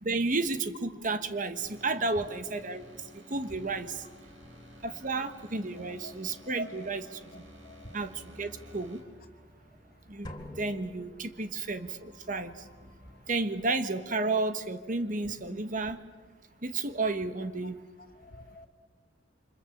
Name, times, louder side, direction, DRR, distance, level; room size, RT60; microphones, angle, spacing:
voice 1, 0.0-2.8 3.1-4.0 4.8-7.4 7.9-9.0 10.1-10.3 10.6-12.6 13.3-16.0 16.6-17.8, right 3 dB, 45° right, 9 dB, 1.4 m, -32 dB
sound 1, 1.5-9.0, equal, 80° right, 5.1 m, -53 dB
sound 2, 2.4-13.5, equal, 20° right, 7.0 m, -57 dB
voice 2, 5.8-6.1 6.4-6.9 7.3-8.0 13.0-13.2 18.0-18.7, left 2 dB, 50° left, 5 dB, 2.7 m, -50 dB
sound 3, 10.2-11.9, left 1 dB, 20° left, 2.6 m, -46 dB
29.0 x 26.0 x 7.4 m, 1.3 s
head